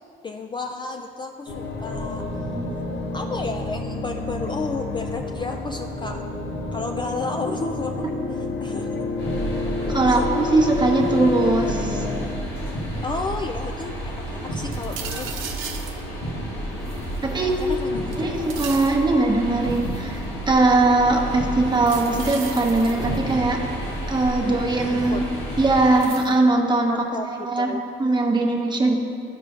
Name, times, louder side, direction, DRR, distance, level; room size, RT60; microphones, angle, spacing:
voice 1, 0.2-2.2 3.1-6.2 6.7-9.0 10.1-10.3 13.0-15.4 17.6-18.2 24.9-25.2 26.9-27.3 27.6-27.8, left 3 dB, 25° left, 4 dB, 0.3 m, -32 dB
sound 1, 1.5-12.3, left 2 dB, 70° left, 0.9 m, -29 dB
voice 2, 2.5-2.8 9.9-12.0 17.2-17.5 18.2-23.6 24.1-25.2 25.6-26.9 27.3-28.9, right 2 dB, 20° right, 0 dB, 1.0 m, -21 dB
sound 2, 9.2-26.1, right 1 dB, 85° left, 1.5 m, -31 dB
sound 3, 14.7-16.0 16.9-17.7 18.1-19.0 19.7-20.2 21.7-23.3 25.0-25.1 26.0-26.3, right 7 dB, 85° right, 0.7 m, -36 dB
12.5 x 4.9 x 2.4 m, 2.5 s
cardioid pair, 90°, 20 cm